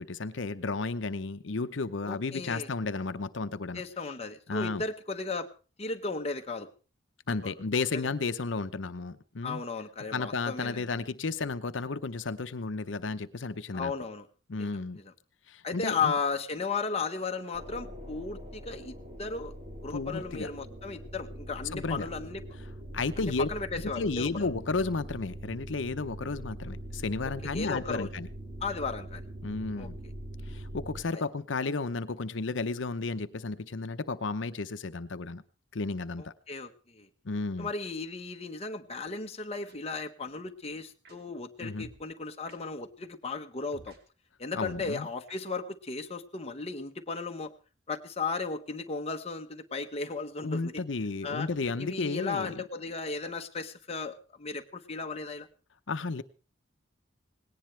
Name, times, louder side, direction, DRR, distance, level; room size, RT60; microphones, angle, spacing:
voice 1, 0.0-3.8 4.5-4.8 7.3-9.6 10.1-13.9 14.5-15.0 15.5-16.1 19.9-20.5 21.7-22.1 22.9-23.5 24.0-28.3 29.4-30.0 30.5-35.4 35.7-36.3 37.2-37.7 41.6-41.9 44.5-45.1 50.4-52.6 55.9-56.2, left 3 dB, 80° left, 12 dB, 0.8 m, -33 dB
voice 2, 2.0-2.7 3.7-5.5 5.8-6.7 7.3-7.5 7.9-8.1 9.4-10.8 13.7-14.2 15.0-15.1 15.6-19.5 19.8-22.4 23.2-24.5 27.4-28.1 28.6-29.2 29.8-29.9 31.1-31.2 36.2-37.1 37.6-44.0 44.4-47.5 47.9-50.7 51.2-51.5 51.8-55.5, left 4 dB, 35° left, 4 dB, 1.1 m, -35 dB
sound 1, 17.5-31.0, right 1 dB, 35° right, 4.6 m, -43 dB
sound 2, 39.7-39.8 41.0-41.2 41.8-42.0 42.5-42.6 43.7-44.0 44.6-44.8 45.3-45.4, right 2 dB, 60° right, 3.0 m, -52 dB
19.0 x 18.0 x 3.3 m, 0.34 s
head